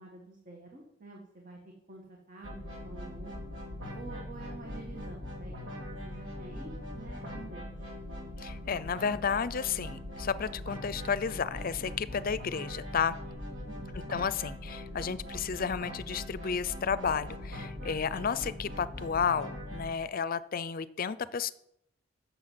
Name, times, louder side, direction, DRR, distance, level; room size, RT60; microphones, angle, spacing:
voice 1, 0.0-1.6 1.9-3.4 3.9-5.5 5.8-7.9 13.6-14.1, right 3 dB, 45° right, -1 dB, 1.8 m, -48 dB
sound 1, 2.4-19.9, left 1 dB, 75° right, 3.5 m, -41 dB
voice 2, 8.4-13.2 13.9-21.5, left 6 dB, 50° left, 16 dB, 0.5 m, -32 dB
10.0 x 7.0 x 7.7 m, 0.77 s
head